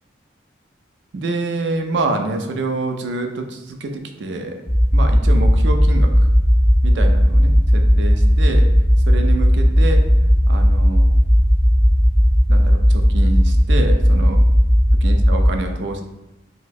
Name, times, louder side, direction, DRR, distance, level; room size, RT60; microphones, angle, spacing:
voice 1, 1.1-4.6 4.9-6.3 6.8-8.6 9.1-10.0 10.5-11.1 12.5-14.4 15.0-16.0, right 2 dB, 70° right, 5 dB, 0.4 m, -26 dB
sound 1, 4.7-15.5, equal, 5° left, 0.4 m, -15 dB
2.7 x 2.1 x 3.9 m, 0.99 s
head